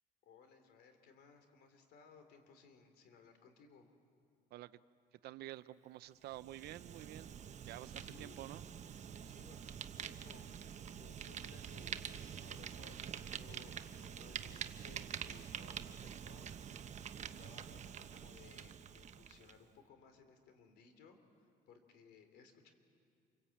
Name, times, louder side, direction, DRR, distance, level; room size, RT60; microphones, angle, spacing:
voice 1, 0.2-3.9 8.0-8.4 9.2-10.6 11.0-22.7, left 5 dB, 75° left, 7 dB, 3.5 m, -62 dB
voice 2, 5.1-7.4 7.7-8.6, right 15 dB, 70° right, 15 dB, 0.6 m, -49 dB
Fire, 6.2-19.6, right 8 dB, 45° right, 1.0 m, -47 dB
28.0 x 24.0 x 8.6 m, 2.4 s
cardioid pair, 110°, 17 cm